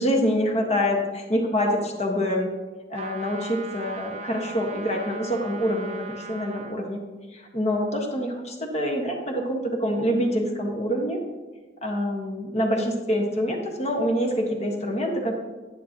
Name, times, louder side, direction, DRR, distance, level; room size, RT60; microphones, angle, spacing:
voice 1, 0.0-2.5 2.9-7.0 7.3-11.2 11.8-15.3, equal, 40° left, 1 dB, 1.6 m, -26 dB
sound 1, 2.9-6.8, right 4 dB, 35° right, 0.7 m, -39 dB
10.5 x 9.9 x 3.0 m, 1.3 s
head